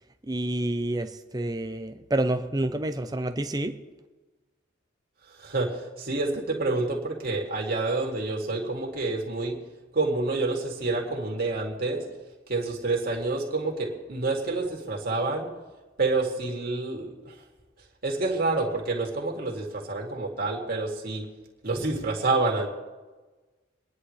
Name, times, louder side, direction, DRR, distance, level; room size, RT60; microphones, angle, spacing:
voice 1, 0.2-3.8, right 1 dB, 20° right, 8 dB, 0.7 m, -28 dB
voice 2, 5.4-9.6 9.9-12.0 12.5-15.5 16.0-17.3 18.0-21.3 21.6-22.7, right 3 dB, 50° right, -1 dB, 2.6 m, -28 dB
26.5 x 10.5 x 3.3 m, 1.2 s
head